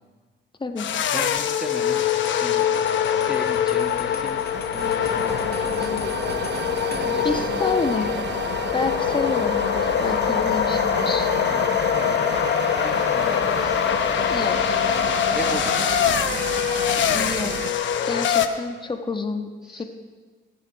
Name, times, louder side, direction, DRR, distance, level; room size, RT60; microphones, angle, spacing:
sound 1, 0.8-18.5, left 9 dB, 70° left, 1.0 m, -23 dB
voice 1, 1.1-2.7 3.0-4.4 4.7-6.1 6.9-8.1 11.3-11.7 11.9-12.3 12.8-13.8 15.3-17.3 19.6-19.8, equal, 5° right, 0 dB, 1.3 m, -37 dB
sound 2, 1.9-7.1, left 6 dB, 50° left, 2.0 m, -42 dB
sound 3, 3.8-17.7, right 8 dB, 60° right, 0.8 m, -33 dB
voice 2, 7.2-8.1 8.7-11.3 14.3-14.8 17.1-17.7 18.0-19.8, left 3 dB, 25° left, 6 dB, 1.4 m, -29 dB
21.0 x 7.1 x 5.7 m, 1.4 s
cardioid pair, 90°, 20 cm